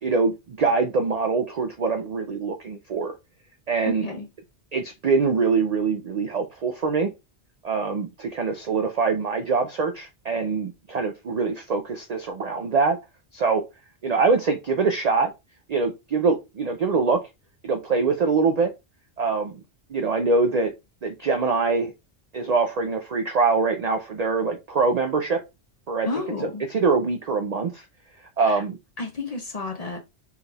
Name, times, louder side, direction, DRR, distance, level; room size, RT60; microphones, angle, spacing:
voice 1, 0.0-3.2 3.7-4.1 4.7-7.1 7.6-13.0 13.3-13.6 14.0-15.3 15.7-17.2 17.6-18.7 19.2-19.5 19.9-20.7 21.0-21.9 22.3-25.4 25.9-26.1 26.7-27.8 28.4-28.8, right 4 dB, 60° right, 0.4 m, -23 dB
voice 2, 3.9-4.3 26.1-26.6 28.4-28.6 29.0-30.0, left 2 dB, 40° left, 0.6 m, -31 dB
4.6 x 2.3 x 3.3 m
omnidirectional pair, 1.2 m